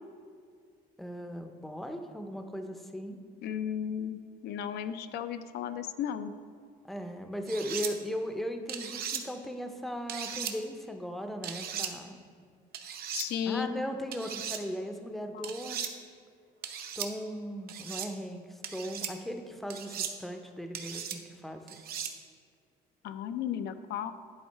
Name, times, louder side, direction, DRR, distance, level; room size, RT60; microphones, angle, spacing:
voice 1, 1.0-3.2 6.8-12.2 13.5-15.8 17.0-21.8, equal, ahead, 6 dB, 0.5 m, -38 dB
voice 2, 3.4-6.3 13.1-13.8 15.3-15.5 23.0-24.1, left 9 dB, 75° left, 10 dB, 0.4 m, -34 dB
sound 1, 7.5-7.9 8.7-9.2 10.1-10.5 11.4-11.9 12.7-13.3 14.1-14.6 15.4-15.9 16.6-17.1 17.7-18.1 18.6-19.1 19.7-20.1 20.7-21.2 21.7-22.1, right 8 dB, 65° right, 0.7 m, -37 dB
10.5 x 3.5 x 4.5 m, 2.2 s
cardioid pair, 110°, 17 cm